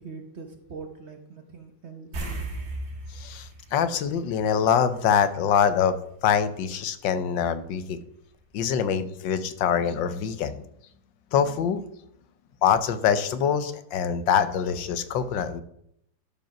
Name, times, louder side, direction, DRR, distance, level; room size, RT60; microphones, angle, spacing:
voice 1, 0.0-2.3, right 4 dB, 45° right, 5 dB, 1.0 m, -42 dB
sound 1, 2.1-4.9 5.2-5.4 8.3-8.4 8.7-8.8, right 2 dB, 85° right, 2.9 m, -36 dB
voice 2, 3.1-5.9 6.2-8.0 8.5-10.6 11.3-11.8 12.6-15.6, left 8 dB, 80° left, 11 dB, 1.5 m, -24 dB
12.0 x 5.1 x 5.9 m, 0.72 s
omnidirectional pair, 2.0 m